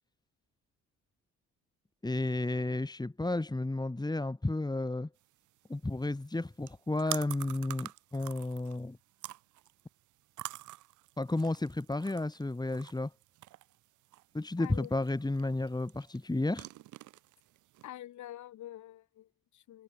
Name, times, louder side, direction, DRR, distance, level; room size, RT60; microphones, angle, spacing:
voice 1, 2.0-5.1 5.7-9.0 11.2-13.1 14.3-16.7, left 2 dB, 15° left, 2.8 m, -32 dB
sound 1, 5.2-17.9, right 16 dB, 85° right, 2.2 m, -48 dB
voice 2, 14.6-14.9 17.8-19.8, left 13 dB, 75° left, 3.3 m, -46 dB
cardioid pair, 75°, 30 cm